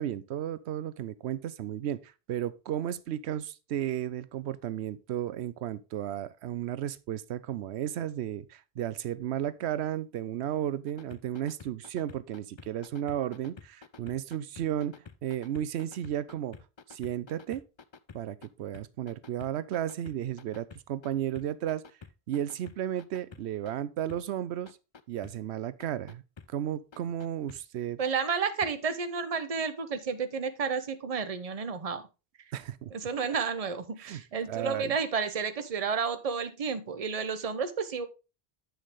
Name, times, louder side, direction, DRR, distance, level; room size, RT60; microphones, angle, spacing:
voice 1, 0.0-15.0 15.2-16.6 16.9-17.6 18.1-21.8 22.3-24.8 25.1-26.2 26.5-28.0 32.5-32.9 34.0-34.2 34.5-35.0, right 11 dB, 90° right, 0.9 m, -34 dB
sound 1, 10.9-18.5 18.7-21.1 21.4-23.7 24.1-24.2 24.7-25.3 25.8-26.5 26.9-27.6 28.1-28.2 28.6-28.7 29.2-29.3, left 5 dB, 35° left, 0.4 m, -49 dB
voice 2, 28.0-32.0 32.9-38.1, right 5 dB, 35° right, 0.9 m, -31 dB
8.2 x 6.4 x 3.6 m
omnidirectional pair, 1.1 m